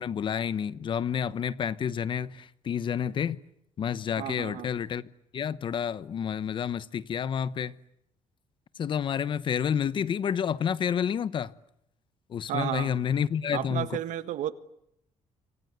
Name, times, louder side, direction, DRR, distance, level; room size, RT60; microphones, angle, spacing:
voice 1, 0.0-3.4 3.8-5.0 5.3-7.7 8.8-11.5 12.3-13.9, left 8 dB, 40° left, 1.0 m, -29 dB
voice 2, 4.2-4.7 12.5-12.9 13.5-14.5, right 12 dB, 80° right, 1.6 m, -32 dB
27.0 x 26.0 x 8.1 m
cardioid pair, 170°, 13 cm